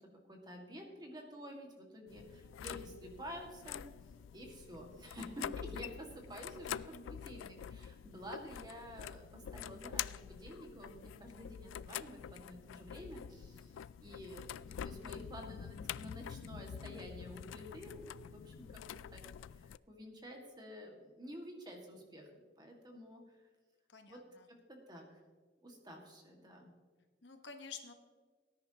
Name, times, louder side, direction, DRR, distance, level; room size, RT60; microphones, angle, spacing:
voice 1, 0.3-3.8 4.3-18.7 18.9-19.2 19.5-22.3 22.6-23.5 24.1-24.2 24.5-25.1 25.6-26.7, equal, 20° right, 1 dB, 1.9 m, -50 dB
sound 1, 2.1-19.8, left 9 dB, 80° left, 0.3 m, -46 dB
voice 2, 23.9-24.5 27.2-27.9, left 6 dB, 60° left, 5 dB, 1.3 m, -50 dB
18.5 x 10.5 x 2.9 m, 1.5 s
head